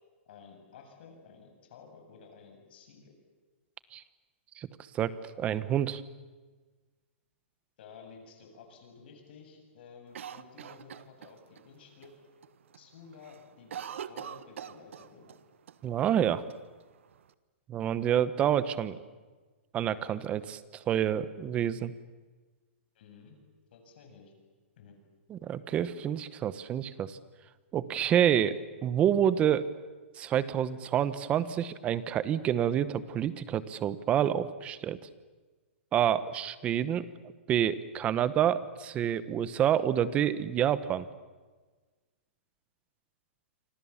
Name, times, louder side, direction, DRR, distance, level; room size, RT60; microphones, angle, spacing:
voice 1, 0.3-3.1 7.8-12.1 12.8-15.3 22.9-23.4 23.7-24.3 24.8-25.0, left 5 dB, 55° left, 4 dB, 7.8 m, -53 dB
voice 2, 5.4-6.0 15.8-16.4 17.7-19.0 19.7-21.9 25.3-27.2 27.7-29.7 30.2-35.0 35.9-37.1 37.5-41.1, right 10 dB, 20° right, 15 dB, 1.0 m, -28 dB
Cough, 10.1-11.6 12.0-12.1 12.4-12.8 13.1-15.4 15.7-15.8 16.5-17.3, right 8 dB, 75° right, 1.2 m, -43 dB
29.0 x 25.5 x 7.3 m, 1.3 s
hypercardioid pair, 160°, 7 cm